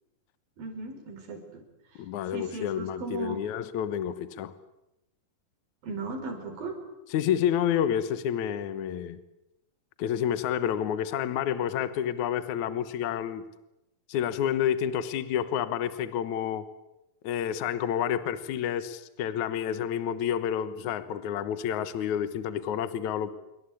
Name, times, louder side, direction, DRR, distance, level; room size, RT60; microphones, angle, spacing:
voice 1, 0.6-1.6 2.3-3.4 5.8-6.8, right 3 dB, 85° right, 5 dB, 6.5 m, -37 dB
voice 2, 2.0-4.5 7.1-9.2 10.0-13.4 14.1-16.7 17.2-23.3, left 9 dB, 65° left, 13 dB, 2.4 m, -29 dB
27.5 x 23.5 x 8.5 m, 0.91 s
omnidirectional pair, 4.0 m